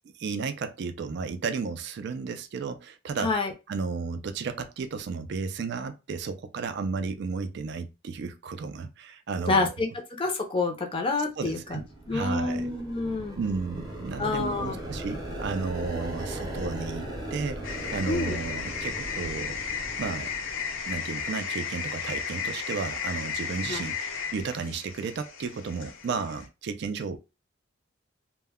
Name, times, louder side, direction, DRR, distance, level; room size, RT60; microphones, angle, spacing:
voice 1, 0.2-3.3 3.7-9.7 11.4-11.8 12.1-12.7 13.4-19.6 20.0-20.3 20.9-27.2, right 5 dB, 55° right, 0.3 m, -33 dB
voice 2, 3.2-3.5 9.5-9.9 10.2-13.4 14.2-14.8 18.1-18.4 23.7-23.8, left 3 dB, 25° left, 0.5 m, -28 dB
sound 1, 11.5-21.3, right 1 dB, 20° right, 0.7 m, -38 dB
sound 2, 17.6-26.5, left 6 dB, 80° left, 0.6 m, -34 dB
2.2 x 2.1 x 3.4 m
head